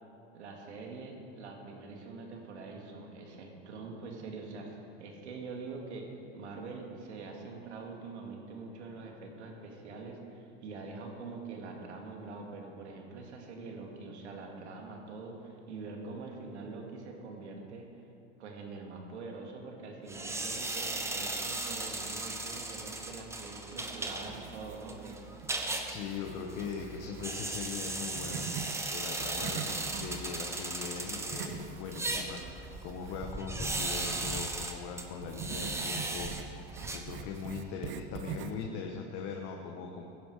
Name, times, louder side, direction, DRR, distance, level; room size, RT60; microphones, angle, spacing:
voice 1, 0.3-6.1 6.3-17.9 18.4-25.2, right 3 dB, 90° right, 1 dB, 2.4 m, -44 dB
sound 1, 20.1-37.6, right 2 dB, 10° right, 1.1 m, -37 dB
sound 2, 24.3-25.1 25.4-28.8 29.1-34.5 35.2-38.7, right 7 dB, 35° right, 0.8 m, -44 dB
voice 2, 25.9-28.5 28.9-36.6 36.9-40.1, left 5 dB, 55° left, 1 dB, 1.4 m, -40 dB
16.0 x 10.5 x 5.0 m, 2.9 s
supercardioid pair, 115°, 33 cm